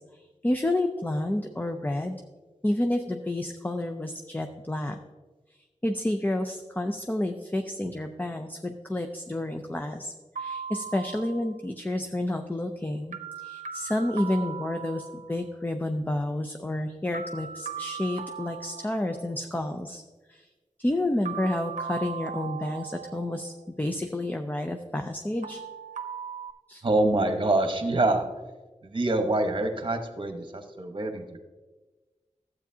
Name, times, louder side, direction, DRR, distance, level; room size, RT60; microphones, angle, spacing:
voice 1, 0.4-2.2 2.6-5.0 5.8-20.0 20.3-20.5 20.8-25.6 26.7-26.8, left 1 dB, 15° left, 5 dB, 0.5 m, -30 dB
sound 1, 10.4-11.5 13.1-15.4 17.1-19.5 21.3-23.6 25.4-26.5, right 6 dB, 80° right, 0.7 m, -38 dB
voice 2, 26.8-28.2 28.8-31.4, right 2 dB, 40° right, 5 dB, 1.1 m, -25 dB
12.5 x 8.1 x 2.8 m, 1.3 s
wide cardioid pair, 80°, 13 cm